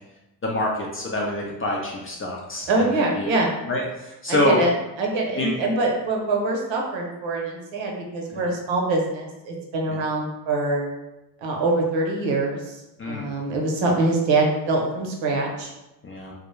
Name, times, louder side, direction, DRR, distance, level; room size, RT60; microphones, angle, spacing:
voice 1, 0.4-3.3 3.7-4.6 5.4-5.6 8.3-8.5 9.9-10.0 13.0-13.3 16.0-16.3, left 1 dB, 25° left, -2 dB, 0.5 m, -26 dB
voice 2, 2.7-3.5 4.3-4.7 5.0-10.9 11.4-12.8 13.1-15.7, right 2 dB, 65° right, 0 dB, 0.8 m, -24 dB
2.3 x 2.0 x 3.0 m, 0.98 s
hypercardioid pair, 50°, 50 cm